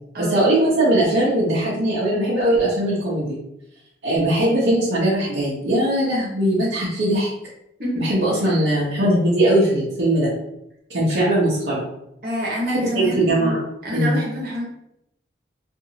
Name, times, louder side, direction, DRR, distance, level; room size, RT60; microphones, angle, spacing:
voice 1, 0.2-3.4 4.0-7.3 8.0-10.3 10.9-11.8 12.9-13.6 13.9-14.2, right 1 dB, 80° right, -9 dB, 0.8 m, -20 dB
voice 2, 12.2-13.3 13.8-14.6, equal, 55° right, -4 dB, 1.1 m, -27 dB
2.8 x 2.6 x 2.8 m, 0.81 s
head